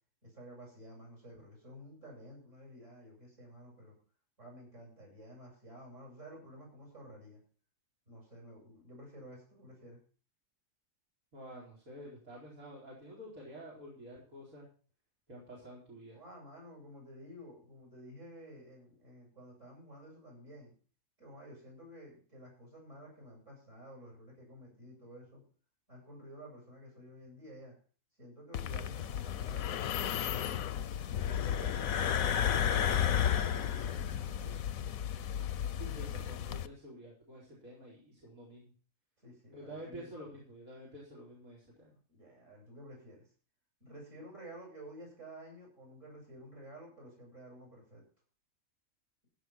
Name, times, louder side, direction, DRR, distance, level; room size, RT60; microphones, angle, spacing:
voice 1, 0.2-3.9 4.4-7.4 8.1-10.0 16.1-20.7 21.2-25.4 25.9-27.7 28.2-30.6 31.2-34.6 39.2-40.1 41.8-43.2 43.8-48.0, equal, 60° right, -2 dB, 8.5 m, -52 dB
voice 2, 11.3-14.7 15.3-16.2 35.7-38.7 39.5-41.9, equal, 90° right, -6 dB, 4.9 m, -49 dB
sound 1, 28.5-36.7, left 9 dB, 80° left, 1.2 m, -33 dB
15.5 x 7.2 x 6.0 m, 0.41 s
omnidirectional pair, 1.4 m